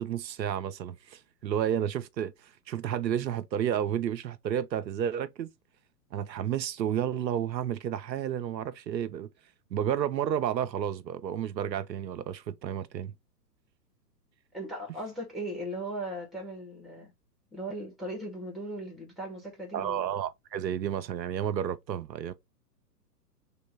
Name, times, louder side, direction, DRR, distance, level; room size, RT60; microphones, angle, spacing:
voice 1, 0.0-5.5 6.1-9.3 9.7-13.1 19.7-22.3, right 9 dB, 85° right, 0.6 m, -31 dB
voice 2, 14.5-17.1 17.5-20.1, right 1 dB, ahead, 1.7 m, -38 dB
3.4 x 2.9 x 4.4 m
hypercardioid pair, 125°, 50 cm